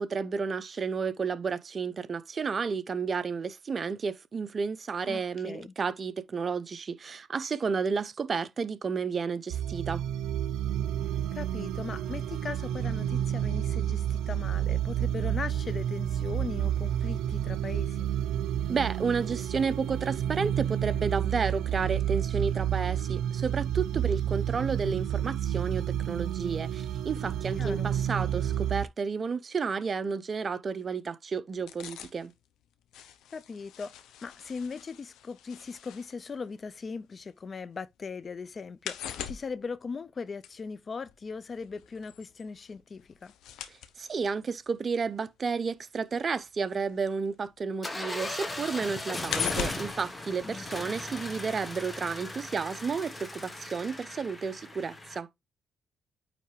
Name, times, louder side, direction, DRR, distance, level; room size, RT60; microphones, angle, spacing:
voice 1, 0.0-10.0 18.7-32.3 44.0-55.3, right 5 dB, 40° right, 0.7 m, -31 dB
voice 2, 5.1-5.7 11.3-18.1 27.6-27.9 33.3-33.9 34.2-43.3 50.4-50.6, left 5 dB, 40° left, 0.4 m, -39 dB
sound 1, 9.5-28.9, right 10 dB, 90° right, 0.5 m, -30 dB
sound 2, 31.5-37.6 37.9-47.6 48.0-51.1 51.4-51.5, left 9 dB, 85° left, 0.7 m, -41 dB
sound 3, 47.8-55.2, left 2 dB, 20° left, 1.3 m, -38 dB
9.1 x 3.3 x 3.2 m
cardioid pair, 90°, 0 cm